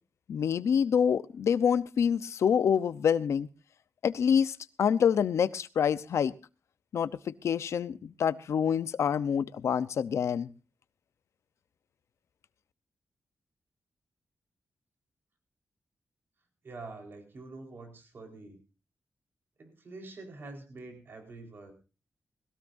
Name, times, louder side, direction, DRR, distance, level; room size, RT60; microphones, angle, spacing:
voice 1, 0.3-3.5 4.0-6.3 6.9-10.5, left 7 dB, 80° left, 14 dB, 0.8 m, -27 dB
voice 2, 16.6-18.6 19.6-21.7, right 3 dB, 50° right, 4 dB, 4.4 m, -46 dB
21.0 x 17.0 x 2.7 m, 0.33 s
wide cardioid pair, 140°, 5 cm